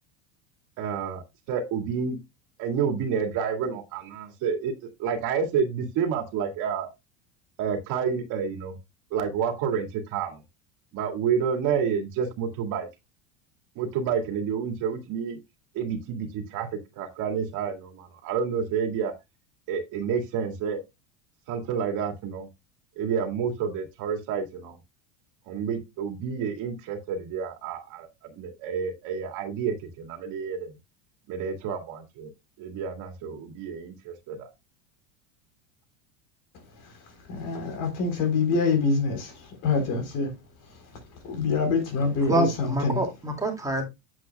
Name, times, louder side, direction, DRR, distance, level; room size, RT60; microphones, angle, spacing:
voice 1, 0.8-2.2 2.6-4.7 5.0-6.9 7.6-8.8 9.1-10.4 10.9-12.9 13.8-15.4 15.7-16.7 17.0-19.1 19.7-20.8 21.5-22.5 23.0-24.8 25.5-30.8 31.3-32.3 32.6-34.5, right 6 dB, 50° right, 2.1 m, -29 dB
voice 2, 37.3-39.3 39.6-40.3 41.2-43.0, left 4 dB, 55° left, 3.8 m, -25 dB
voice 3, 42.3-43.8, right 1 dB, 10° right, 2.3 m, -26 dB
8.8 x 7.5 x 2.3 m
supercardioid pair, 130°, 38 cm